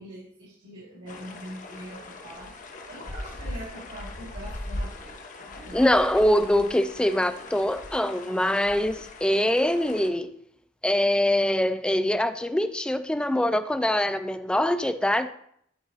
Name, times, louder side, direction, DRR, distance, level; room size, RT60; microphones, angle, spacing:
voice 1, 0.0-2.5 2.9-5.9, equal, 80° right, 2.5 m, -43 dB
sound 1, 1.1-10.1, left 1 dB, 40° left, 0.8 m, -40 dB
voice 2, 5.7-10.3 10.8-15.3, left 1 dB, 5° left, 0.3 m, -23 dB
11.0 x 3.7 x 4.0 m
head